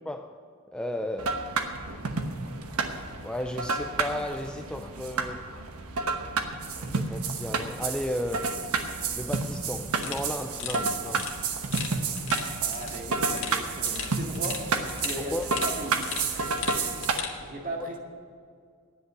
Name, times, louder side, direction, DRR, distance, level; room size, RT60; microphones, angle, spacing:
voice 1, 0.1-0.4 0.7-1.4 3.2-5.5 6.8-8.6 9.2-11.3 15.2-15.5, left 1 dB, 5° left, 6 dB, 0.3 m, -34 dB
sound 1, 1.2-17.2, right 4 dB, 85° right, 1.1 m, -30 dB
sound 2, 9.9-17.4, left 7 dB, 60° left, 1.5 m, -38 dB
voice 2, 12.6-14.7 15.0-15.3 15.6-16.1 17.4-18.0, right 1 dB, 35° right, 0 dB, 2.0 m, -37 dB
10.0 x 8.2 x 9.9 m, 2.2 s
head